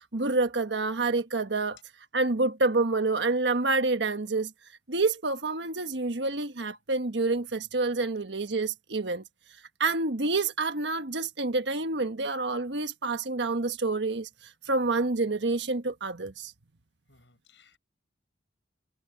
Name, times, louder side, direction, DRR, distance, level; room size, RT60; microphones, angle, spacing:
voice 1, 0.0-1.8 2.1-4.5 4.9-9.2 9.8-14.3 14.7-16.5, right 3 dB, 70° right, 1.4 m, -28 dB
voice 2, 17.1-17.8, left 4 dB, 85° left, 5.1 m, -61 dB
head